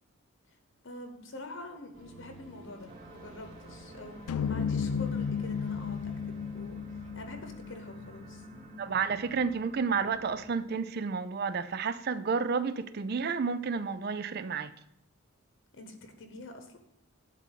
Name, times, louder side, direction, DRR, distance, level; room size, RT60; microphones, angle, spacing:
voice 1, 0.8-8.4 15.7-16.8, left 2 dB, 55° left, 1.0 m, -46 dB
sound 1, 1.9-10.5, right 1 dB, 65° right, 3.1 m, -52 dB
sound 2, 2.9-10.5, right 2 dB, 30° right, 0.9 m, -52 dB
sound 3, 4.3-8.6, left 6 dB, 85° left, 0.3 m, -34 dB
voice 2, 8.8-14.7, right 5 dB, 45° right, 0.4 m, -31 dB
10.5 x 3.9 x 6.5 m
head